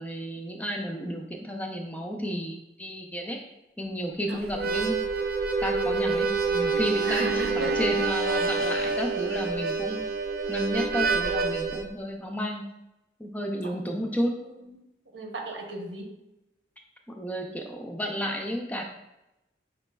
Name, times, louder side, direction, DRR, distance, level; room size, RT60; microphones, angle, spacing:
voice 1, 0.0-3.4 3.8-5.0 5.6-10.0 10.5-12.6 13.2-14.4 17.1-18.8, equal, 10° left, 2 dB, 0.4 m, -32 dB
voice 2, 4.3-4.7 7.0-7.7 13.6-13.8 14.4-14.8 15.1-16.1, right 2 dB, 85° right, 1 dB, 0.9 m, -35 dB
Harmonica, 4.5-11.9, right 4 dB, 55° right, 0.5 m, -27 dB
5.2 x 4.0 x 2.2 m, 0.92 s
head